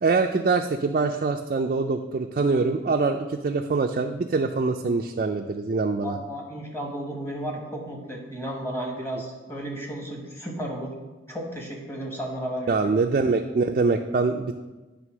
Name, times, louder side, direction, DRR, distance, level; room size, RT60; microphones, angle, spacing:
voice 1, 0.0-6.2 12.7-14.5, right 4 dB, 45° right, 3 dB, 0.3 m, -24 dB
voice 2, 6.0-10.9 11.3-12.7, right 1 dB, 15° left, 0 dB, 1.2 m, -33 dB
9.1 x 3.5 x 6.0 m, 1.2 s
head